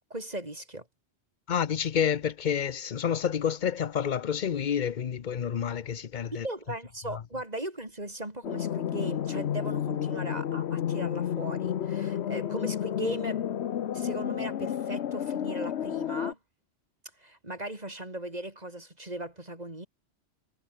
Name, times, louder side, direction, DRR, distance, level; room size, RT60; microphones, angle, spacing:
voice 1, 0.1-0.8 6.3-13.6 13.9-16.4 17.2-19.9, right 1 dB, 35° right, 4.2 m, -38 dB
voice 2, 1.5-6.5 7.1-7.2, left 8 dB, 50° left, 0.8 m, -29 dB
sound 1, 8.4-16.3, left 10 dB, 75° left, 1.1 m, -31 dB
omnidirectional pair, 1.1 m